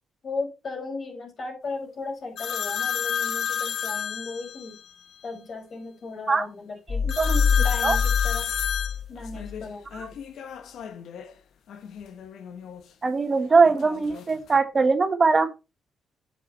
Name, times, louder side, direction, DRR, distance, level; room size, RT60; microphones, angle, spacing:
voice 1, 0.2-4.8 5.2-7.1 7.6-8.5 9.1-10.1, left 3 dB, 50° left, 5.2 m, -36 dB
sound 1, 2.4-4.8 7.1-11.3 11.7-12.8 13.7-14.6, left 8 dB, 70° left, 1.1 m, -31 dB
sound 2, 6.9-9.6, left 6 dB, 25° left, 0.6 m, -25 dB
voice 2, 7.0-7.5 7.8-8.0 13.0-15.5, right 4 dB, 30° right, 1.6 m, -21 dB
9.6 x 6.4 x 4.3 m
cardioid pair, 90°, 0 cm